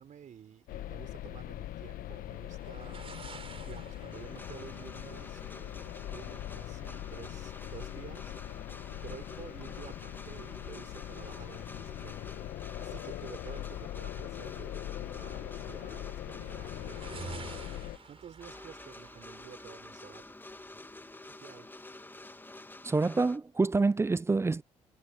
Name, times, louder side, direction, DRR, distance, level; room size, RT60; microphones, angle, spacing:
voice 1, 0.0-8.6 9.0-12.3 12.6-17.8 18.0-20.3 21.3-21.7, right 8 dB, 60° right, 3.9 m, -51 dB
sound 1, 0.7-18.0, left 14 dB, 75° left, 1.0 m, -41 dB
sound 2, 1.3-21.0, right 5 dB, 40° right, 3.7 m, -53 dB
sound 3, 4.1-23.4, left 2 dB, 15° left, 1.8 m, -49 dB
voice 2, 22.8-24.6, right 3 dB, 20° right, 0.4 m, -27 dB
supercardioid pair, 60°, 15 cm